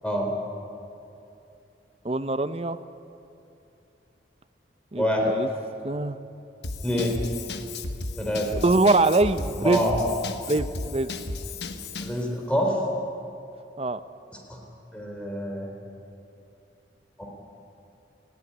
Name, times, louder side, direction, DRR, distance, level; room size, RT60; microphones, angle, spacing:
voice 1, 0.0-0.3 5.0-5.2 6.8-7.2 8.2-8.5 9.6-10.0 12.0-12.8 14.5-14.6 14.9-15.7 17.2-17.3, equal, 5° left, -1 dB, 3.6 m, -26 dB
voice 2, 2.0-2.8 4.9-5.5 5.8-6.2 8.6-9.8 10.5-11.1 13.8-14.0, right 2 dB, 35° right, 12 dB, 0.6 m, -23 dB
Drum kit / Drum, 6.6-12.2, left 2 dB, 70° left, 1.2 m, -34 dB
19.0 x 15.5 x 10.0 m, 2.8 s
head